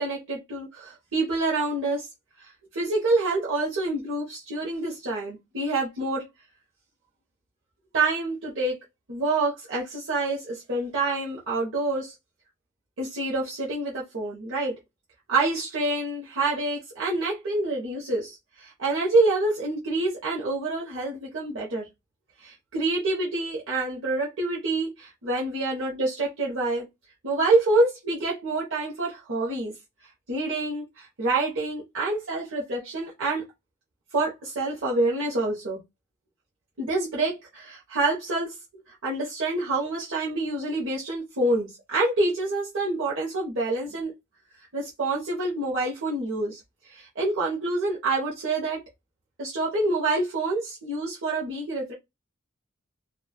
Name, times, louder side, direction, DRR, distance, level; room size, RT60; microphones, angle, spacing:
voice 1, 0.0-2.1 2.4-6.2 7.9-8.7 9.1-12.1 13.0-14.7 15.3-21.9 22.4-26.8 27.2-29.7 30.3-33.4 34.1-35.8 36.8-38.5 38.9-44.1 44.7-46.6 46.9-48.8 49.4-51.9, right 2 dB, 65° right, 0.7 m, -27 dB
2.9 x 2.2 x 2.2 m
head